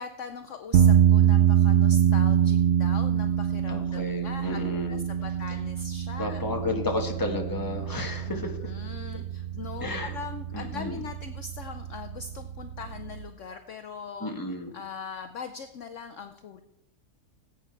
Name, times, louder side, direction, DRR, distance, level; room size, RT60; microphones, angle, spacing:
voice 1, 0.0-6.4 8.3-14.3 14.7-16.6, left 5 dB, 60° left, 8 dB, 0.9 m, -41 dB
sound 1, 0.7-13.2, right 10 dB, 60° right, 0.8 m, -25 dB
voice 2, 3.7-5.0 6.2-8.7 9.8-10.1 10.5-11.0 14.2-14.7, left 2 dB, 15° left, 3 dB, 1.3 m, -32 dB
18.0 x 8.7 x 4.5 m, 0.95 s
omnidirectional pair, 1.7 m